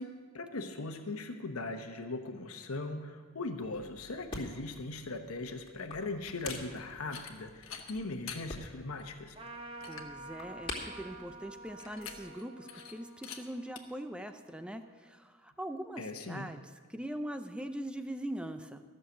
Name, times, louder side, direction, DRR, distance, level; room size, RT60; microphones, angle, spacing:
voice 1, 0.0-9.3 16.0-16.5, left 2 dB, 85° left, 5 dB, 1.0 m, -39 dB
sound 1, 3.6-12.3, left 2 dB, 25° left, 2.4 m, -47 dB
sound 2, 6.3-6.6 7.0-7.3 7.6-8.4 9.0-9.1 9.5-9.6 9.8-10.1 11.8-12.4 12.7-12.9 13.2-13.4 13.8-13.9, left 8 dB, 65° left, 1.2 m, -45 dB
Trumpet, 9.3-15.2, right 2 dB, 25° right, 0.9 m, -50 dB
voice 2, 9.9-16.6 16.9-18.8, right 1 dB, 5° right, 8 dB, 0.5 m, -41 dB
14.0 x 6.7 x 7.9 m, 1.5 s
head